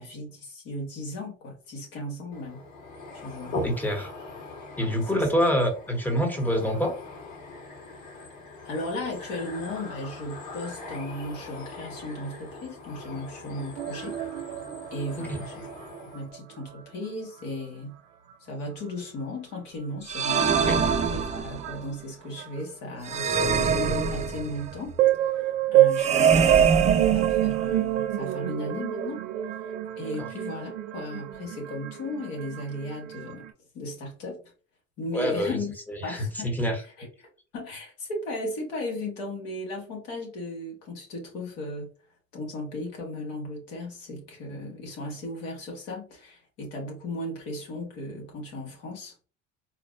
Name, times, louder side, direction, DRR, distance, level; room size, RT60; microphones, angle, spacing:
voice 1, 0.0-2.6 3.1-3.6 4.8-5.2 8.5-14.2 14.9-15.7 16.0-18.0 18.4-20.5 21.1-25.0 25.4-29.2 29.6-33.4 33.7-34.4 35.0-35.7 36.0-37.1 37.5-41.9 42.3-49.1, left 1 dB, 75° left, 1.6 m, -36 dB
sound 1, 2.3-16.3, left 2 dB, 50° left, 1.6 m, -41 dB
voice 2, 3.6-4.1 4.8-7.0 15.2-15.4 20.5-20.8 26.1-26.7 30.2-30.3 35.1-35.6 35.9-36.8, equal, 5° left, 0.9 m, -27 dB
sound 2, 13.8-16.4 16.6-17.1 17.4-17.6 18.3-18.4 19.5-19.6 20.4-20.5 20.7-21.9 22.4-22.6 23.1-23.2 23.8-33.5, right 13 dB, 90° right, 0.5 m, -28 dB
sound 3, 20.1-21.8 23.1-24.7 25.9-27.8, right 6 dB, 20° right, 0.4 m, -24 dB
4.1 x 2.0 x 2.5 m
hypercardioid pair, 80°, 35 cm